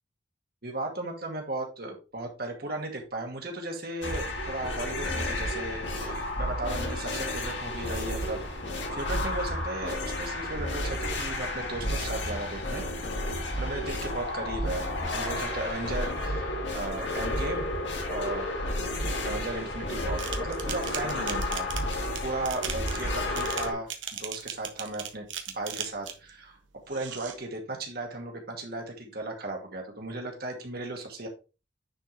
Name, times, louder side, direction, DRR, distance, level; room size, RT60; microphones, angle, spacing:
voice 1, 0.6-8.4 8.9-12.8 13.6-17.7 18.1-18.6 19.2-23.9 24.2-25.3 25.5-26.6 26.9-31.3, right 2 dB, 50° right, 2 dB, 2.1 m, -36 dB
sound 1, 4.0-23.7, left 1 dB, 70° left, 2.1 m, -32 dB
sound 2, 20.2-26.3 26.9-27.4, right 9 dB, 80° right, 1.3 m, -38 dB
9.9 x 4.7 x 3.4 m, 0.31 s
head